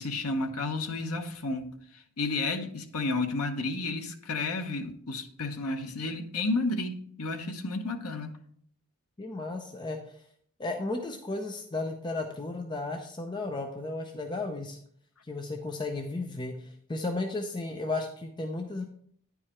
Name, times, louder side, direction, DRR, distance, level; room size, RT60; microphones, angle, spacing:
voice 1, 0.0-8.3, left 2 dB, 75° left, 6 dB, 0.9 m, -32 dB
voice 2, 9.2-10.2 10.6-14.8 15.2-18.8, left 2 dB, 20° left, 3 dB, 0.6 m, -34 dB
10.0 x 4.8 x 4.3 m, 0.62 s
head